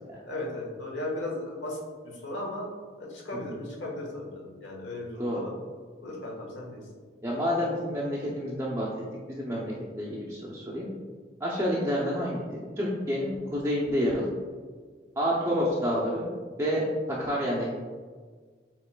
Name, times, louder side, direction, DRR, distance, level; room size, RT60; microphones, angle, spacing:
voice 1, 0.2-2.7 3.0-5.5 6.0-6.8, left 1 dB, 75° left, -2 dB, 1.1 m, -36 dB
voice 2, 7.2-8.9 9.3-10.9 11.4-14.3 15.2-16.3 16.6-17.8, equal, 15° right, -5 dB, 0.5 m, -29 dB
7.6 x 3.0 x 2.2 m, 1.5 s
head